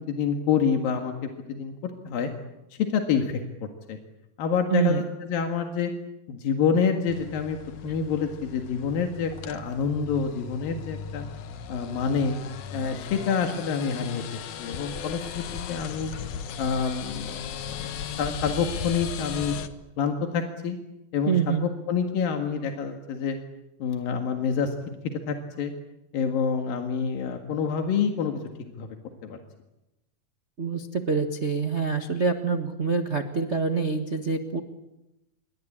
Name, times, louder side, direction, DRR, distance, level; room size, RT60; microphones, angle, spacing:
voice 1, 0.1-2.3 2.7-4.0 4.4-5.9 6.3-7.6 7.8-11.3 11.7-12.4 12.7-16.1 16.6-19.6 20.0-20.8 21.1-23.4 23.8-24.7 25.0-25.7 26.1-28.9 29.2-29.4, left 6 dB, 85° left, 4 dB, 3.6 m, -27 dB
voice 2, 4.7-5.0 21.3-21.7 30.6-34.6, right 5 dB, 55° right, 5 dB, 0.7 m, -26 dB
sound 1, 7.1-19.7, left 8 dB, 65° left, 2.5 m, -37 dB
28.0 x 23.0 x 8.7 m, 0.95 s
omnidirectional pair, 4.0 m